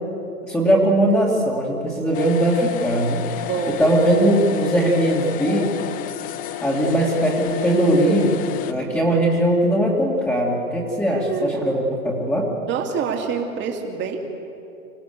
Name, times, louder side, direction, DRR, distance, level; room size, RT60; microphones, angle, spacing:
voice 1, 0.5-3.5 3.8-5.7 6.6-8.4 8.7-12.5, right 1 dB, 5° left, -6 dB, 2.5 m, -20 dB
sound 1, 2.1-8.7, left 12 dB, 20° left, 0.6 m, -31 dB
voice 2, 3.5-4.0 8.7-9.0 11.1-11.5 12.7-14.3, right 6 dB, 25° right, 2 dB, 2.6 m, -27 dB
26.0 x 16.5 x 6.9 m, 2.8 s
hypercardioid pair, 130°, 42 cm